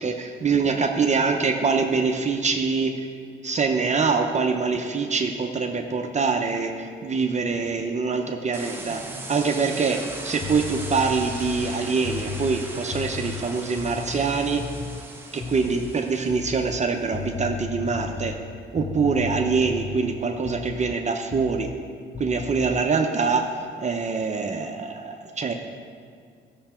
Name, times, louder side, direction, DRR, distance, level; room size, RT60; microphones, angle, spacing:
voice 1, 0.0-2.9 3.4-9.0 9.3-14.6 15.3-18.3 18.7-21.7 22.2-23.5 23.8-25.5, right 4 dB, 35° right, 3 dB, 0.8 m, -24 dB
sound 1, 8.5-16.7, right 2 dB, 10° right, 1.3 m, -38 dB
sound 2, 10.1-15.0 15.4-16.0 16.3-21.0 21.3-21.9 22.1-22.8, left 7 dB, 20° left, 0.4 m, -35 dB
15.5 x 6.8 x 4.4 m, 2.2 s
cardioid pair, 90°, 20 cm